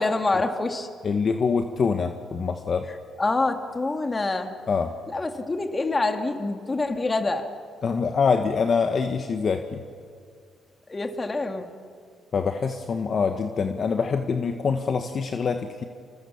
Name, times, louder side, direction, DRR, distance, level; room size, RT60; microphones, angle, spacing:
voice 1, 0.0-0.9 3.2-4.6 5.1-7.5 10.9-11.7, left 2 dB, 25° left, 5 dB, 2.6 m, -26 dB
voice 2, 1.0-2.9 4.7-4.9 7.8-9.8 12.3-15.8, left 5 dB, 50° left, 6 dB, 1.5 m, -25 dB
29.5 x 26.5 x 7.2 m, 2.2 s
cardioid pair, 90°, 0 cm